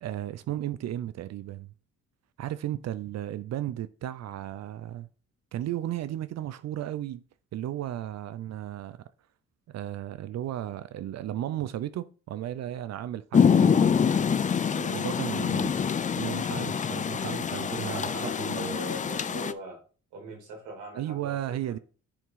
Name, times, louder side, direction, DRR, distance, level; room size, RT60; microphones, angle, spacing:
voice 1, 0.0-1.7 2.4-5.1 5.5-7.2 7.5-9.0 9.7-14.2 14.8-15.7 16.1-18.8 20.9-21.8, right 12 dB, 60° right, 0.5 m, -35 dB
Rain, 13.3-19.5, left 7 dB, 25° left, 0.4 m, -25 dB
voice 2, 17.9-19.8 20.1-21.8, right 3 dB, 90° right, 2.8 m, -41 dB
8.8 x 3.6 x 4.7 m
cardioid pair, 90°, 30 cm